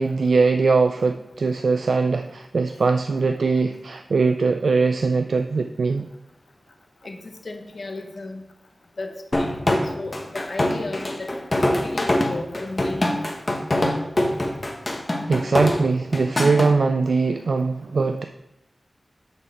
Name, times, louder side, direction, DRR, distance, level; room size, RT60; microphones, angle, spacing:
voice 1, 0.0-6.1 9.8-9.9 15.3-18.2, right 4 dB, 80° right, 7 dB, 0.3 m, -21 dB
voice 2, 7.0-8.4 9.0-9.6 9.8-11.3 11.8-13.2, left 2 dB, 65° left, 4 dB, 1.0 m, -35 dB
sound 1, 9.3-16.7, left 1 dB, 35° left, 1.0 m, -23 dB
6.7 x 6.3 x 4.4 m, 0.90 s
wide cardioid pair, 70°, 0 cm